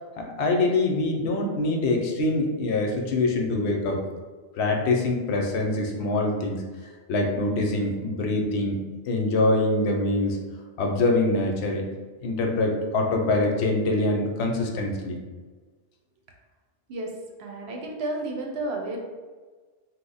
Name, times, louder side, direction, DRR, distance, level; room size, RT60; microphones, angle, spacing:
voice 1, 0.2-4.0 4.6-6.6 7.1-8.8 9.1-10.4 10.8-11.8 12.2-15.2, left 2 dB, 70° left, 1 dB, 0.8 m, -24 dB
voice 2, 17.4-19.0, right 2 dB, 65° right, 1 dB, 0.8 m, -31 dB
2.9 x 2.0 x 3.9 m, 1.4 s
omnidirectional pair, 1.2 m